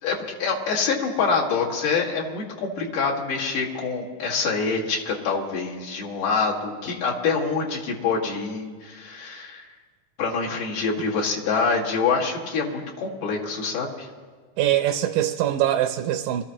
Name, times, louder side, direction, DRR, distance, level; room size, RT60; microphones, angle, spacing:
voice 1, 0.0-9.7 10.2-14.1, left 4 dB, 85° left, -4 dB, 3.5 m, -26 dB
voice 2, 14.6-16.4, right 12 dB, 85° right, 6 dB, 2.1 m, -23 dB
24.5 x 14.0 x 2.9 m, 1.5 s
omnidirectional pair, 3.6 m